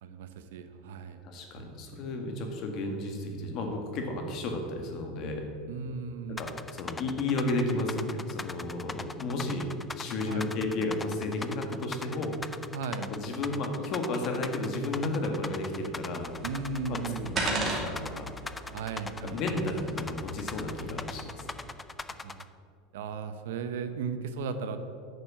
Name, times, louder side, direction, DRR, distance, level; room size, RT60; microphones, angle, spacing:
voice 1, 0.0-1.2 1.5-1.7 5.7-6.4 10.3-10.5 12.7-13.1 16.4-17.4 18.7-19.4 22.1-22.4 22.9-24.8, right 5 dB, 80° right, 9 dB, 0.9 m, -36 dB
voice 2, 1.2-5.5 6.4-9.7 10.0-12.4 13.1-16.3 16.9-18.3 19.2-21.5, left 2 dB, 50° left, 3 dB, 2.0 m, -33 dB
sound 1, 6.4-22.4, left 3 dB, 15° left, 0.5 m, -39 dB
sound 2, 16.2-21.7, right 2 dB, 30° right, 2.7 m, -37 dB
9.4 x 6.6 x 7.5 m, 2.3 s
supercardioid pair, 115°, 0 cm